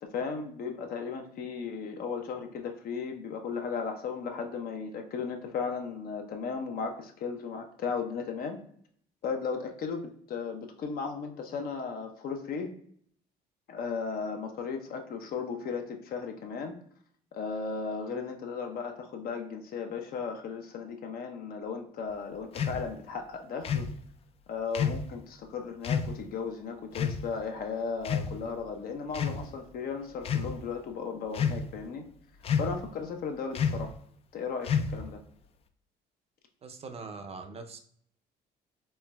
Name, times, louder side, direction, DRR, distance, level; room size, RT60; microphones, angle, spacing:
voice 1, 0.0-8.6 9.2-12.7 13.7-16.8 17.3-23.9 24.5-32.1 32.6-33.9 34.3-35.2, left 5 dB, 60° left, 4 dB, 0.7 m, -36 dB
sound 1, 22.6-22.8 23.6-23.9 24.8-25.1 25.8-26.1 27.0-27.2 28.0-28.6 29.1-29.4 30.2-30.5 31.3-31.8 32.4-32.8 33.6-33.9 34.6-35.1, left 6 dB, 35° left, 0.3 m, -29 dB
voice 2, 36.6-37.8, right 4 dB, 35° right, 6 dB, 0.5 m, -42 dB
4.4 x 3.1 x 2.2 m, 0.62 s
cardioid pair, 110°, 17 cm